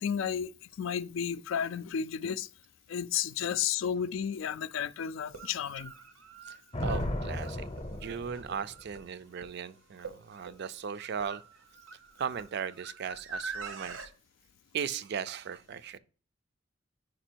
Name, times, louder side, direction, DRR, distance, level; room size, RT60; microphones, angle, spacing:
voice 1, 0.0-2.5 2.9-5.9, left 8 dB, 75° left, 0.3 m, -32 dB
sound 1, 4.1-4.2 5.2-14.1, right 4 dB, 85° right, 0.9 m, -45 dB
Thunder, 6.7-8.9, left 1 dB, 30° left, 0.6 m, -35 dB
voice 2, 6.8-11.4 12.2-14.1 14.7-16.0, right 7 dB, 55° right, 0.4 m, -37 dB
5.0 x 4.9 x 4.4 m
head